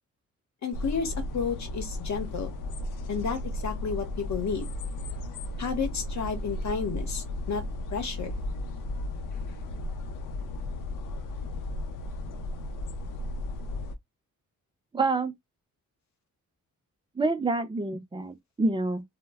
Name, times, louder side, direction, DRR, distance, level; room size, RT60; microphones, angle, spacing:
voice 1, 0.6-2.5 3.1-4.7 5.6-7.6 7.9-8.3, left 6 dB, 60° left, 0.9 m, -31 dB
sound 1, 0.7-14.0, left 1 dB, 80° left, 0.5 m, -35 dB
voice 2, 14.9-15.3 17.2-19.0, right 3 dB, 15° right, 0.5 m, -27 dB
2.1 x 2.0 x 3.4 m
cardioid pair, 110°, 31 cm